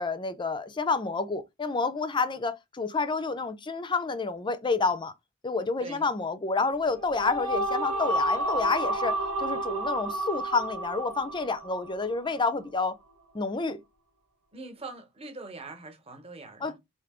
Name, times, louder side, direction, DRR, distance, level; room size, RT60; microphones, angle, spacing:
voice 1, 0.0-5.1 5.4-13.0 13.3-13.8 16.6-16.8, left 4 dB, 20° left, 0.4 m, -29 dB
sound 1, 6.8-12.3, right 1 dB, 65° right, 1.2 m, -30 dB
voice 2, 14.5-16.8, right 3 dB, 30° right, 1.0 m, -43 dB
4.7 x 2.7 x 3.6 m
head